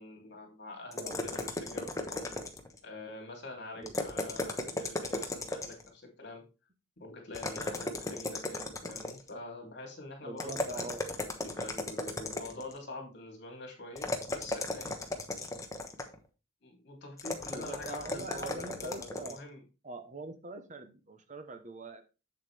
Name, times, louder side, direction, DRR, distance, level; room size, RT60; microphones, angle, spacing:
voice 1, 0.0-2.3 2.8-6.4 7.0-10.8 11.4-14.9 16.6-19.6, left 2 dB, 50° left, 2 dB, 2.9 m, -45 dB
sound 1, 0.9-2.8 3.8-5.9 7.3-9.3 10.4-12.7 14.0-16.2 17.2-19.4, left 2 dB, 15° left, 1.0 m, -36 dB
voice 2, 10.2-11.0 17.5-19.4 19.8-22.0, right 2 dB, 35° right, 8 dB, 0.9 m, -43 dB
8.1 x 7.5 x 3.3 m, 0.30 s
head